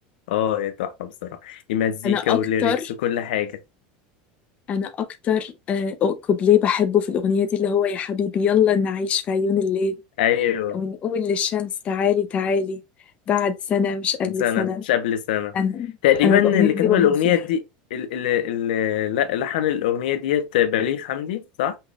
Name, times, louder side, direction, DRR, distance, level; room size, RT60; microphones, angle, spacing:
voice 1, 0.3-2.7 3.0-3.6 10.2-10.8 14.2-15.5 16.0-17.6 17.9-21.8, left 10 dB, 90° left, 0.9 m, -23 dB
voice 2, 2.0-2.9 4.7-9.9 10.7-12.8 13.3-14.8 15.5-15.9 16.2-17.4, left 7 dB, 30° left, 0.7 m, -22 dB
5.7 x 2.5 x 3.4 m
supercardioid pair, 155°, 5 cm